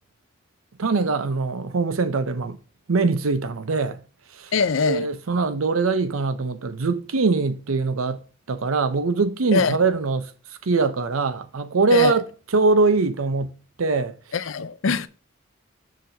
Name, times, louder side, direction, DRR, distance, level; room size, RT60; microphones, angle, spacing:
voice 1, 0.8-2.6 2.9-4.0 4.4-4.5 4.8-8.2 8.5-10.3 10.6-12.3 12.5-13.5 13.8-14.2, right 3 dB, 90° right, 0.7 m, -22 dB
voice 2, 4.5-5.1 9.5-9.8 11.9-12.1 14.3-15.1, left 5 dB, 70° left, 0.5 m, -22 dB
6.5 x 6.0 x 2.7 m
head